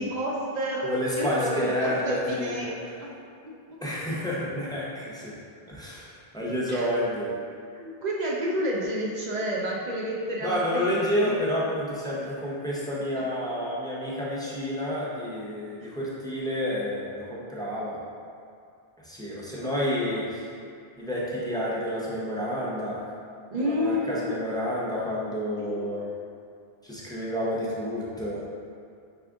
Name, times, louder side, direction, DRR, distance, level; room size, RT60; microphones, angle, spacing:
voice 1, 0.0-3.1 3.4-3.8 6.7-6.9 7.7-11.2 12.2-12.3 13.1-13.3 15.8-15.9 19.6-19.7 23.5-24.4 25.6-26.0, equal, 50° right, -4 dB, 0.6 m, -31 dB
voice 2, 0.8-2.8 3.8-5.4 5.7-7.3 10.4-18.0 19.0-20.5 21.0-23.1 23.6-26.1 26.8-28.4, equal, 5° left, -7 dB, 0.5 m, -29 dB
5.0 x 2.4 x 3.5 m, 2.3 s
omnidirectional pair, 1.0 m